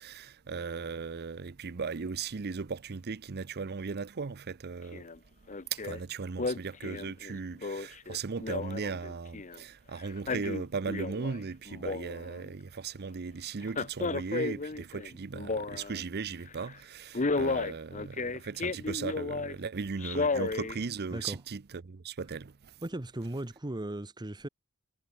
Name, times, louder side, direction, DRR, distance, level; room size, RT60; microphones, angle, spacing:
voice 1, 0.0-5.1 5.7-22.8, right 5 dB, 50° right, 0.6 m, -37 dB
Male speech man speaking, 4.9-5.2 5.5-6.0 6.4-9.6 10.0-11.4 11.7-12.5 13.7-16.0 16.5-16.7 17.2-19.6 20.0-20.8 21.2-21.3, left 3 dB, 35° left, 0.9 m, -33 dB
voice 2, 22.8-24.5, right 1 dB, 20° right, 0.9 m, -37 dB
head